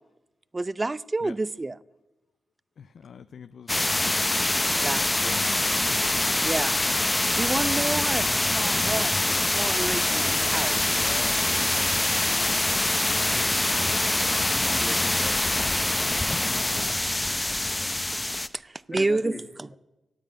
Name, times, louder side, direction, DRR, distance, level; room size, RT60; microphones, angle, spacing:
voice 1, 0.5-1.8 4.8-5.3 6.4-6.8 7.4-9.2 9.5-10.8 18.5-19.7, right 2 dB, 35° right, 0.5 m, -29 dB
voice 2, 2.8-4.2 4.7-6.0 6.9-7.2 10.9-11.4 12.0-12.3 13.3-13.6 13.9-14.0 16.4-16.9, left 7 dB, 75° left, 0.4 m, -43 dB
sound 1, 3.7-18.5, left 1 dB, 20° left, 0.8 m, -24 dB
voice 3, 14.4-15.5 18.9-19.4, left 3 dB, 50° left, 2.0 m, -40 dB
15.5 x 9.1 x 8.8 m
cardioid pair, 50°, 0 cm